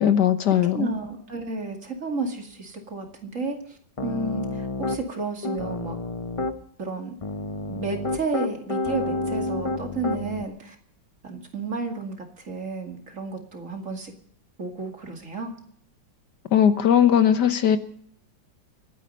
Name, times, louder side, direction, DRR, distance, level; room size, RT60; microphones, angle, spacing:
voice 1, 0.0-0.9 16.5-17.8, left 9 dB, 65° left, 10 dB, 1.6 m, -19 dB
voice 2, 0.7-6.0 6.8-7.1 7.7-10.8 11.2-14.1 14.6-15.5, right 3 dB, 40° right, 4 dB, 2.6 m, -32 dB
Piano, 4.0-5.0 5.4-6.6 7.2-10.4, left 2 dB, 35° left, 0.5 m, -29 dB
25.0 x 9.9 x 5.4 m, 0.62 s
omnidirectional pair, 2.0 m